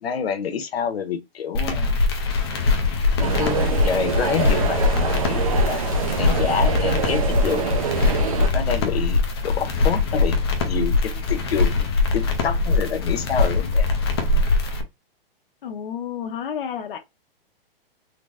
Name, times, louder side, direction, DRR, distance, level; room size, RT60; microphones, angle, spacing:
voice 1, 0.0-2.0 3.2-5.8 6.2-7.8 8.5-11.9 12.1-13.9, left 7 dB, 90° left, 0.9 m, -27 dB
sound 1, 1.5-14.8, left 3 dB, 25° left, 0.5 m, -22 dB
sound 2, 3.2-8.5, right 7 dB, 35° right, 0.4 m, -26 dB
voice 2, 15.6-17.0, left 8 dB, 60° left, 0.8 m, -30 dB
3.9 x 2.0 x 3.4 m
hypercardioid pair, 170°, 30 cm